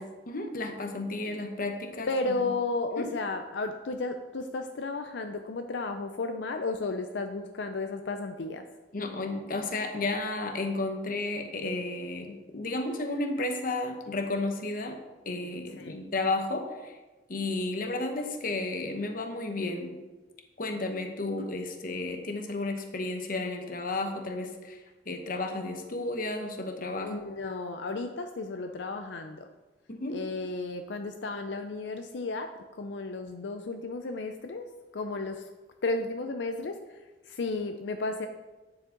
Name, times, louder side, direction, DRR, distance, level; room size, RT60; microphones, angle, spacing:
voice 1, 0.0-2.5 3.0-3.1 8.9-17.0 17.3-20.0 20.6-24.8 25.1-27.1 29.9-30.2, left 2 dB, 50° left, 5 dB, 1.1 m, -33 dB
voice 2, 2.1-8.7 15.8-16.0 27.0-29.5 30.1-32.5 32.8-34.7 34.9-35.4 35.8-36.8 37.3-38.3, left 3 dB, 80° left, 6 dB, 0.5 m, -33 dB
9.5 x 7.2 x 3.8 m, 1.2 s
head